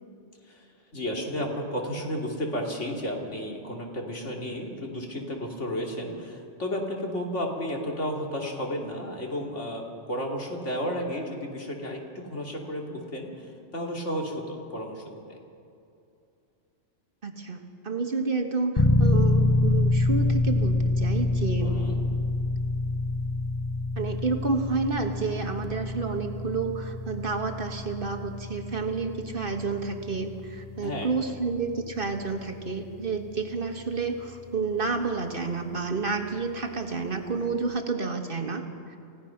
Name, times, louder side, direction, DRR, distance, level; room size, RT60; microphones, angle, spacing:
voice 1, 0.9-15.4 21.6-22.0 30.8-31.1, equal, 75° left, 0 dB, 3.2 m, -33 dB
voice 2, 17.2-21.8 24.0-38.6, right 4 dB, 50° right, 5 dB, 1.6 m, -30 dB
sound 1, 18.8-35.5, left 2 dB, 25° left, 0.5 m, -27 dB
29.0 x 16.0 x 5.8 m, 2.6 s
omnidirectional pair, 1.2 m